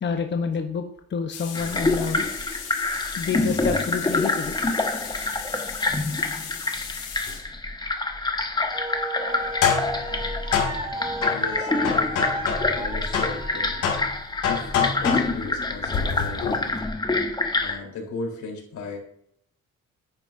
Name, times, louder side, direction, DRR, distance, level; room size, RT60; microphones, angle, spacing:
voice 1, 0.0-2.2 3.2-4.6, left 6 dB, 35° left, 5 dB, 0.9 m, -28 dB
sound 1, 1.3-7.4 9.3-12.8 13.1-16.8, left 7 dB, 85° left, 2.4 m, -30 dB
sound 2, 1.5-17.8, left 2 dB, 15° left, 1.1 m, -27 dB
sound 3, 8.5-13.9, right 1 dB, 15° right, 3.0 m, -34 dB
voice 2, 10.1-10.5 11.3-13.8 14.4-16.9 17.6-19.0, left 3 dB, 70° left, 0 dB, 3.9 m, -36 dB
10.5 x 9.3 x 2.7 m, 0.67 s
cardioid pair, 90°, 30 cm